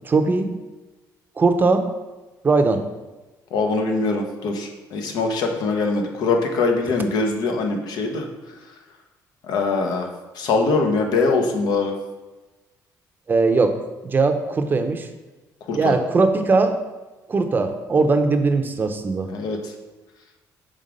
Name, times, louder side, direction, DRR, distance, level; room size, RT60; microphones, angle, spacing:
voice 1, 0.0-0.5 1.4-1.9 2.4-2.8 13.3-13.7 14.0-15.1 15.7-16.7 17.3-19.3, right 3 dB, 30° right, 7 dB, 0.6 m, -19 dB
voice 2, 3.5-8.3 9.5-10.1 10.3-11.9 15.7-15.9 19.3-19.7, left 3 dB, 70° left, 3 dB, 1.0 m, -22 dB
5.4 x 3.5 x 5.1 m, 1.2 s
cardioid pair, 110°, 7 cm